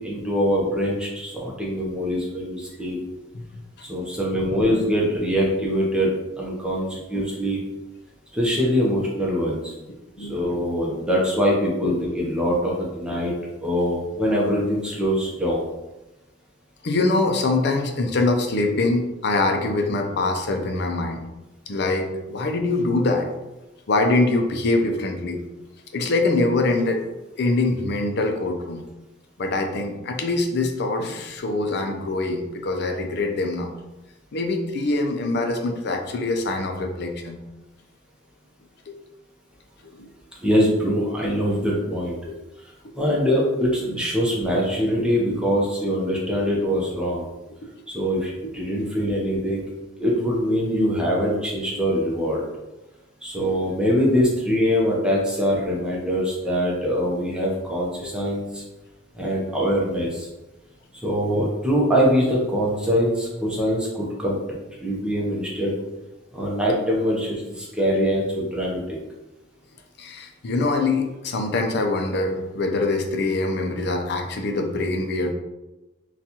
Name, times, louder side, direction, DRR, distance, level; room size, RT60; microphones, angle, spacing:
voice 1, 0.0-3.0 3.9-6.1 6.4-7.6 8.3-9.7 10.2-13.3 13.6-15.7 40.4-42.2 42.9-47.3 47.9-49.6 50.0-52.4 53.2-58.6 59.1-60.3 61.0-64.4 64.8-65.7 66.3-69.0, equal, 5° right, -4 dB, 0.7 m, -23 dB
voice 2, 16.8-21.2 21.7-23.3 23.9-25.4 25.9-27.0 27.4-28.8 29.4-33.7 34.3-37.4 38.9-39.0 39.8-40.1 42.2-42.4 43.9-44.0 45.0-45.1 48.7-48.8 51.8-51.9 53.3-53.6 58.0-58.1 70.0-75.3, left 2 dB, 60° left, 4 dB, 0.5 m, -24 dB
3.9 x 2.3 x 2.8 m, 1.0 s
head